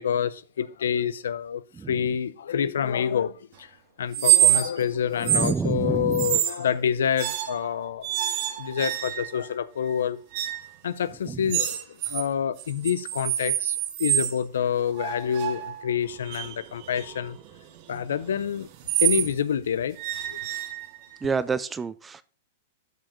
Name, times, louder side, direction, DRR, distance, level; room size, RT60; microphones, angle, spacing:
voice 1, 0.0-1.6 1.9-3.7 4.0-8.1 8.6-10.2 10.8-17.4 17.9-18.7 19.0-20.0 20.3-20.4, left 8 dB, 85° left, 0.6 m, -27 dB
sound 1, 4.1-4.9 5.2-5.6 6.1-6.6 7.2-7.7 8.0-9.4 10.3-10.7 11.5-12.2 12.6-14.4 15.0-19.3 20.0-21.1, right 13 dB, 50° right, 1.3 m, -26 dB
voice 2, 5.2-6.4 11.3-11.4 21.2-22.2, right 5 dB, 15° right, 0.4 m, -28 dB
13.0 x 5.1 x 3.8 m
hypercardioid pair, 140°, 0 cm